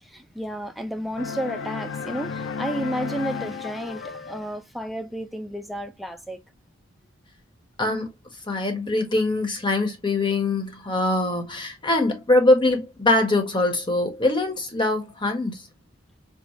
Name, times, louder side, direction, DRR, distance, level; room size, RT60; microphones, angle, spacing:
voice 1, 0.0-6.4, right 1 dB, ahead, 0.4 m, -32 dB
sound 1, 1.2-4.5, left 5 dB, 65° left, 0.5 m, -33 dB
voice 2, 8.5-15.6, left 2 dB, 20° left, 1.0 m, -23 dB
5.5 x 2.0 x 3.0 m
head